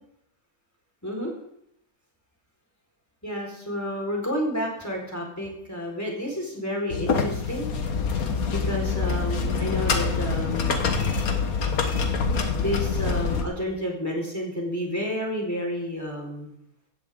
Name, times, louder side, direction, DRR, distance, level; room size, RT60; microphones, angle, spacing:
voice 1, 1.0-1.3 3.2-7.7 8.5-10.7 12.5-16.5, equal, 10° left, -1 dB, 4.5 m, -30 dB
sound 1, 6.9-13.4, left 5 dB, 85° left, 1.8 m, -25 dB
17.0 x 14.0 x 3.7 m, 0.76 s
omnidirectional pair, 1.5 m